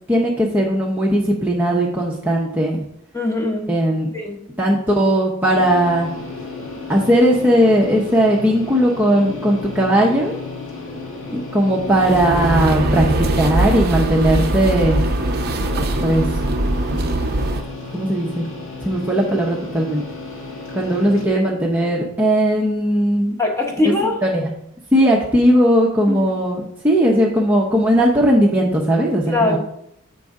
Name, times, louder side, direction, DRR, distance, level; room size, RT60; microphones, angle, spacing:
voice 1, 0.1-2.9 3.7-4.1 4.6-6.1 6.9-10.3 11.3-13.0 13.3-15.0 16.0-16.3 17.9-18.4 18.8-20.0 20.7-23.3 24.0-24.5 24.9-29.6, equal, 10° right, -3 dB, 0.7 m, -17 dB
voice 2, 3.1-3.7 4.1-4.4 23.4-24.2 26.1-26.3 29.3-29.6, left 2 dB, 15° left, 0 dB, 1.0 m, -21 dB
sound 1, 5.5-21.3, left 3 dB, 70° left, 1.8 m, -33 dB
sound 2, 11.8-17.6, right 1 dB, 45° right, 0.6 m, -21 dB
8.2 x 5.3 x 3.6 m, 0.76 s
head